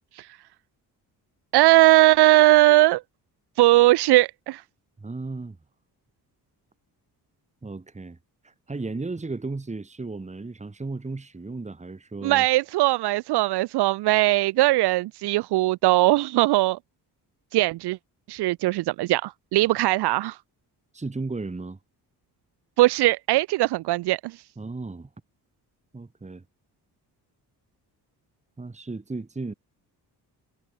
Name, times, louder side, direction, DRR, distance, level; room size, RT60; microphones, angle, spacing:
voice 1, 1.5-3.0 3.6-4.6 12.2-16.8 17.5-18.0 18.3-20.4 22.8-24.4, right 18 dB, 80° right, 0.5 m, -19 dB
voice 2, 5.0-5.6 7.6-8.2 8.4-12.5 20.9-21.8 24.6-25.1 25.9-26.4 28.6-29.5, right 3 dB, 15° right, 2.2 m, -34 dB
cardioid pair, 110°, 39 cm